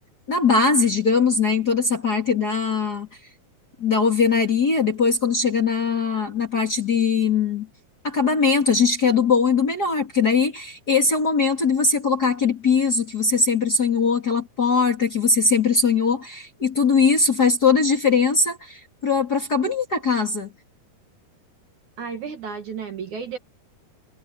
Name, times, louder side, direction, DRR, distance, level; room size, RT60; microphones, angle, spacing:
voice 1, 0.3-3.1 3.8-7.7 8.0-20.5, left 5 dB, 30° left, 2.6 m, -20 dB
voice 2, 22.0-23.4, right 6 dB, 55° right, 2.8 m, -32 dB
omnidirectional pair, 4.7 m